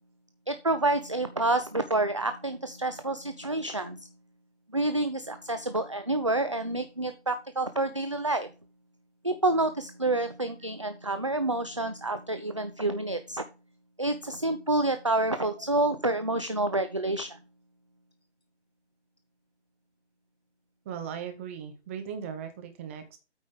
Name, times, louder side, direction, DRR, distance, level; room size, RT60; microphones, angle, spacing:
voice 1, 0.5-4.1 4.7-8.5 9.2-13.5 14.0-17.4, right 2 dB, 30° right, 9 dB, 0.4 m, -28 dB
voice 2, 20.8-23.2, right 7 dB, 10° right, 7 dB, 0.8 m, -38 dB
8.6 x 5.1 x 5.2 m, 0.30 s
figure-of-eight pair, 145°, 35 cm